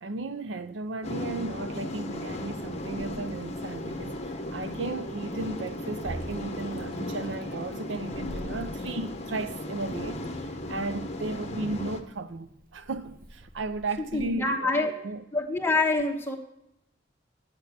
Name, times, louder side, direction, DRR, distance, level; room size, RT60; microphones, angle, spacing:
voice 1, 0.0-15.2, right 2 dB, 85° right, 0.6 m, -35 dB
sound 1, 1.0-12.0, left 1 dB, 35° left, 1.1 m, -36 dB
Meow, 3.0-14.3, equal, 50° right, 1.0 m, -47 dB
voice 2, 14.1-14.9 15.3-16.4, left 2 dB, 15° left, 1.2 m, -26 dB
8.8 x 6.6 x 8.3 m
head